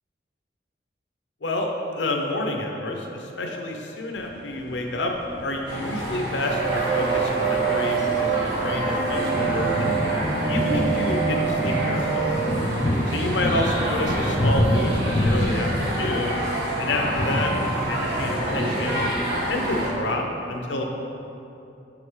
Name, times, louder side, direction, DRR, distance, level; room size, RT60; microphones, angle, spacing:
voice 1, 1.4-5.1 5.4-10.0 10.5-12.3 13.1-16.4 16.8-17.5 17.9-19.1 19.5-20.9, left 1 dB, 75° left, 2 dB, 0.7 m, -29 dB
sound 1, 4.2-20.0, left 1 dB, 30° left, 0.4 m, -29 dB
sound 2, 5.7-19.9, right 1 dB, 65° right, 1.2 m, -28 dB
sound 3, 6.5-14.9, right 6 dB, 35° right, 0.7 m, -27 dB
5.9 x 5.5 x 3.2 m, 2.8 s
head